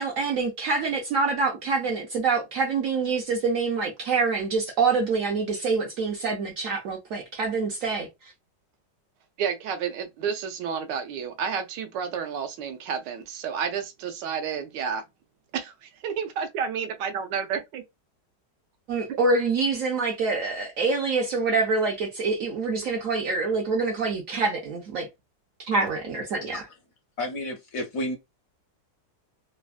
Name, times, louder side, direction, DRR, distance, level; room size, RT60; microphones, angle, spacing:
voice 1, 0.0-8.1 18.9-25.1 25.7-26.6, right 4 dB, 65° right, 0.8 m, -26 dB
voice 2, 9.4-15.0 15.5-17.8 19.1-19.2, right 7 dB, 85° right, 1.3 m, -31 dB
voice 3, 27.2-28.2, left 1 dB, 65° left, 0.9 m, -31 dB
3.3 x 2.0 x 2.3 m
omnidirectional pair, 1.9 m